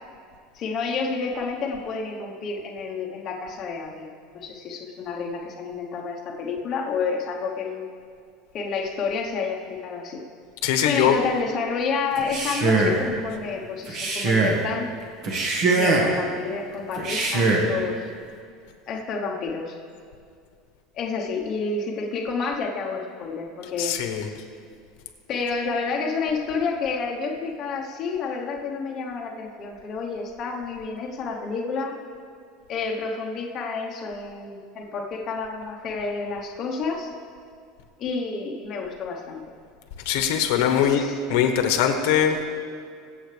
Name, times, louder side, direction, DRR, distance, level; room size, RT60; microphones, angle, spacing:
voice 1, 0.5-4.1 4.3-7.9 8.5-10.2 10.8-14.9 15.8-18.0 18.9-19.7 20.9-24.0 25.3-32.0 32.7-37.1 38.0-39.4 40.7-41.2, left 4 dB, 30° left, -1 dB, 1.0 m, -29 dB
voice 2, 10.6-11.2 23.8-24.3 40.0-42.5, left 8 dB, 70° left, 5 dB, 1.2 m, -21 dB
Male speech man speaking, 12.2-13.1 13.9-14.6 15.2-16.2 17.0-17.7, right 3 dB, 40° right, 1.6 m, -22 dB
23.5 x 7.9 x 3.4 m, 2.3 s
cardioid pair, 175°, 0 cm